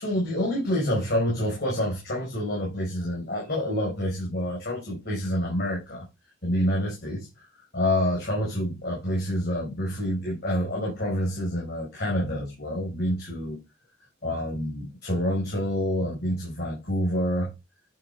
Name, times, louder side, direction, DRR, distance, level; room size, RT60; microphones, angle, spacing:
voice 1, 0.0-6.0 6.4-13.6 14.2-17.5, equal, 55° left, 4.8 m, -27 dB
10.5 x 7.5 x 3.4 m
head